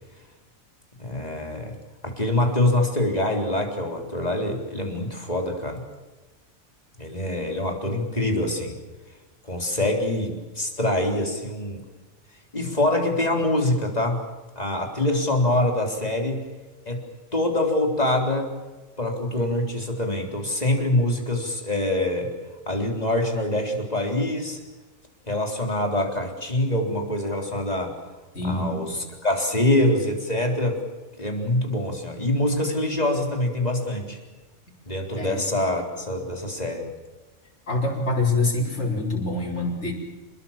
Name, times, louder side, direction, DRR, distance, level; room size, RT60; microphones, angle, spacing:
voice 1, 1.0-1.8 2.0-5.8 7.0-8.8 9.4-11.8 12.5-14.2 14.6-16.4 16.9-17.0 17.3-18.5 19.0-22.3 22.7-24.6 25.3-28.0 28.4-30.8 31.2-34.2 34.9-36.9, left 1 dB, 30° left, 2 dB, 3.9 m, -25 dB
voice 2, 28.3-29.0 35.2-35.4 37.7-39.9, left 2 dB, 65° left, -3 dB, 5.5 m, -25 dB
27.5 x 21.0 x 7.3 m, 1.2 s
omnidirectional pair, 1.3 m